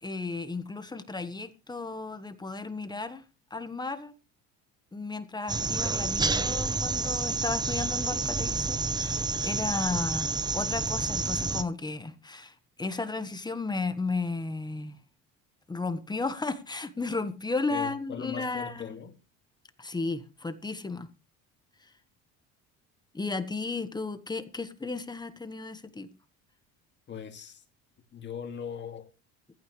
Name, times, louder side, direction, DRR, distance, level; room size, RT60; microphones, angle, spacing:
voice 1, 0.0-3.2 3.5-4.1 4.9-15.0 15.7-19.0 19.8-21.1 21.8-21.9 23.1-26.1, left 3 dB, 15° left, 1.4 m, -34 dB
sound 1, 5.5-11.6, right 3 dB, 15° right, 0.9 m, -29 dB
voice 2, 17.7-19.2 27.1-27.6 28.1-29.1, left 7 dB, 40° left, 2.3 m, -39 dB
15.5 x 15.0 x 3.3 m
cardioid pair, 125°, 30 cm